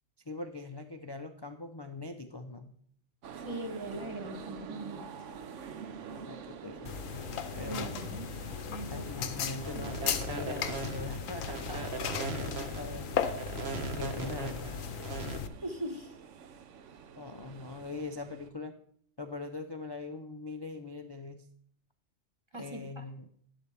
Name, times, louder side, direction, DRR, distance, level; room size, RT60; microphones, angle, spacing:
voice 1, 0.3-2.7 6.1-7.0 7.6-8.0 8.9-13.1 13.9-14.8 17.2-18.8 19.2-21.5 22.5-23.3, left 3 dB, 40° left, 7 dB, 0.3 m, -42 dB
sound 1, 3.2-18.5, right 7 dB, 70° right, 1.1 m, -47 dB
voice 2, 3.3-5.0 7.6-8.3 8.7-9.4 9.8-9.9 15.6-16.1 22.5-23.0, right 2 dB, 25° right, 4 dB, 1.1 m, -41 dB
sound 2, 6.9-15.5, left 7 dB, 90° left, 1.2 m, -37 dB
sound 3, 9.6-15.4, right 4 dB, 55° right, 1.3 m, -38 dB
11.5 x 11.0 x 3.4 m, 0.63 s
omnidirectional pair, 1.3 m